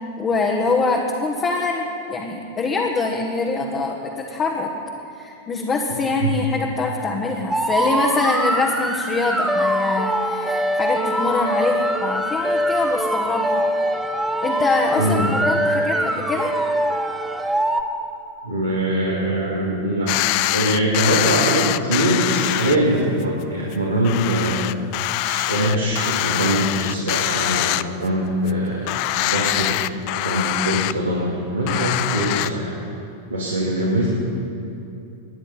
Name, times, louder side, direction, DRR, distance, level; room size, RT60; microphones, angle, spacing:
voice 1, 0.2-4.7 5.2-13.6 14.4-16.5, left 3 dB, 25° left, -1 dB, 1.5 m, -24 dB
sound 1, 7.5-17.8, right 1 dB, 5° right, 1.0 m, -23 dB
voice 2, 15.0-15.3 18.4-20.1 20.5-24.6 25.3-29.0 29.2-29.7 30.1-32.7 33.3-34.1, right 1 dB, 85° right, -7 dB, 2.8 m, -22 dB
sound 2, 20.1-22.8 23.2-23.3 23.7-23.8 24.0-28.2 28.5-28.6 28.9-30.9 31.7-32.5, left 17 dB, 45° left, 0.4 m, -23 dB
21.0 x 10.0 x 5.5 m, 2.7 s
figure-of-eight pair, 90°, 0 cm